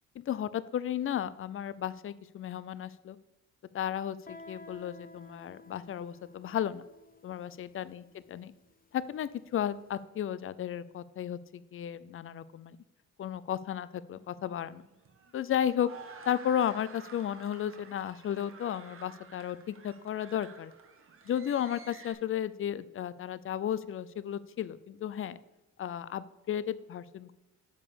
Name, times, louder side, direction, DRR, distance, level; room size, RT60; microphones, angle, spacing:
voice 1, 0.2-3.2 3.7-6.8 7.2-8.5 8.9-12.8 13.2-14.8 15.3-15.9 16.3-20.7 21.3-25.4 25.8-27.3, left 10 dB, 45° left, 17 dB, 0.5 m, -34 dB
Guitar, 4.3-9.7, left 2 dB, 30° left, 1.0 m, -54 dB
sound 1, 14.1-22.1, right 5 dB, 45° right, 1.3 m, -52 dB
6.8 x 5.3 x 7.0 m, 1.0 s
cardioid pair, 90°, 30 cm